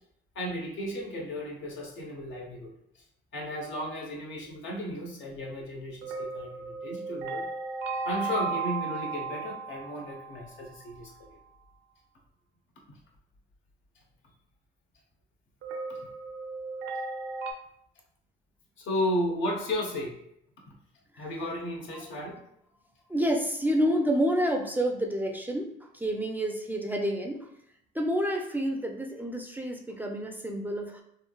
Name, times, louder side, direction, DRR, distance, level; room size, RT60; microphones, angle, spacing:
voice 1, 0.3-2.7 3.3-7.5 8.0-11.4 12.9-13.0 18.8-20.2 21.2-22.4, left 1 dB, 75° left, 0 dB, 0.8 m, -34 dB
sound 1, 6.0-10.9 15.6-17.5, right 4 dB, 75° right, 0.5 m, -35 dB
voice 2, 23.1-27.5 27.9-31.0, equal, 10° right, 2 dB, 0.4 m, -29 dB
3.1 x 2.6 x 2.2 m, 0.73 s
cardioid pair, 90°, 20 cm